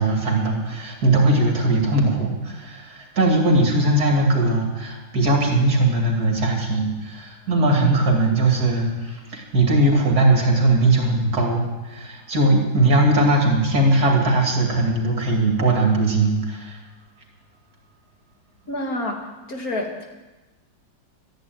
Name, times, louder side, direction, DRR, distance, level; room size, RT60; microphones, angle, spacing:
voice 1, 0.0-16.8, right 2 dB, 55° right, 0 dB, 3.1 m, -19 dB
voice 2, 18.7-20.0, left 1 dB, 50° left, 1 dB, 2.6 m, -28 dB
13.5 x 10.5 x 9.3 m, 1.2 s
omnidirectional pair, 2.0 m